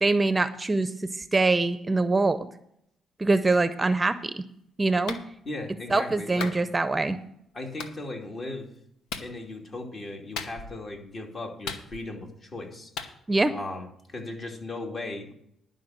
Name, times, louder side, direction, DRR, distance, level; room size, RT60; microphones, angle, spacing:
voice 1, 0.0-2.5 3.2-4.4 4.8-5.2 5.9-7.2 13.3-13.6, right 3 dB, 20° right, 12 dB, 0.6 m, -24 dB
Clapping, 5.1-5.3 6.4-6.6 7.8-8.0 9.1-9.3 10.4-10.8 11.7-12.2 13.0-13.1, left 5 dB, 90° left, 1.0 m, -36 dB
voice 2, 5.4-6.5 7.5-8.7 9.2-12.9 13.5-15.3, left 2 dB, 40° left, 2 dB, 2.6 m, -37 dB
11.5 x 5.5 x 7.7 m, 0.72 s
cardioid pair, 90°, 0 cm